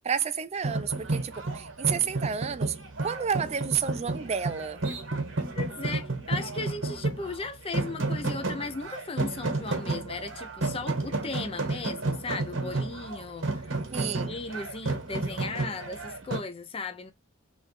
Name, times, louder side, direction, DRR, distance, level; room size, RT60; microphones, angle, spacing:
voice 1, 0.0-2.8 3.0-4.8 13.9-14.4, right 7 dB, 35° right, 0.4 m, -30 dB
sound 1, 0.6-16.4, right 2 dB, 70° right, 1.3 m, -32 dB
voice 2, 5.6-13.7 14.0-17.1, left 3 dB, 30° left, 0.5 m, -36 dB
3.3 x 2.6 x 3.1 m
head